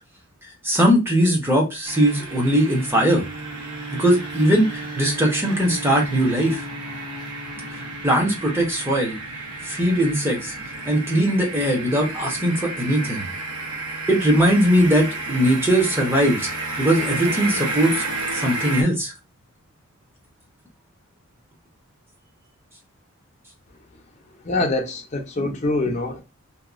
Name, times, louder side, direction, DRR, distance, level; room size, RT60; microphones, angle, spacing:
voice 1, 0.6-3.2 3.9-6.6 7.7-9.2 9.6-10.5 10.8-13.3 14.1-16.5 16.8-19.1, equal, 10° right, 0.8 m, -20 dB
sound 1, 1.8-18.8, right 2 dB, 90° right, 0.8 m, -32 dB
voice 2, 24.4-26.2, left 2 dB, 30° left, 0.5 m, -24 dB
2.8 x 2.2 x 2.3 m
head